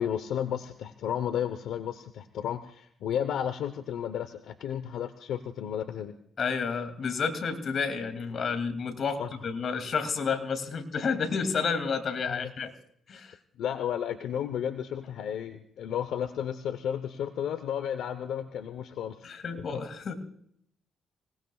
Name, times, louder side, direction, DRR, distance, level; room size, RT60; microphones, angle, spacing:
voice 1, 0.0-6.1 9.2-9.3 12.3-12.4 13.6-19.4 19.7-19.8, left 9 dB, 80° left, 10 dB, 0.9 m, -33 dB
voice 2, 6.4-12.7 13.1-13.4 19.2-20.1, left 5 dB, 55° left, 7 dB, 2.5 m, -30 dB
27.0 x 19.0 x 2.4 m, 0.68 s
cardioid pair, 90°, 0 cm